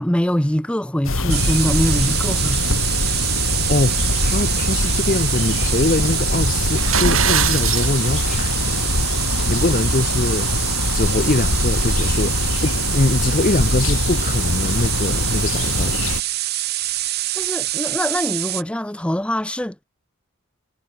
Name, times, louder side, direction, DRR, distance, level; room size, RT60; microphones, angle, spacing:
voice 1, 0.0-2.9 17.3-19.8, equal, 5° left, 0.6 m, -23 dB
sound 1, 1.0-16.2, left 2 dB, 75° left, 2.1 m, -22 dB
sound 2, 1.3-18.6, right 16 dB, 50° right, 0.6 m, -25 dB
voice 2, 3.7-8.9 9.5-10.5 10.9-16.0, left 2 dB, 40° left, 0.7 m, -23 dB
sound 3, 6.7-7.9, right 8 dB, 80° right, 3.2 m, -21 dB
head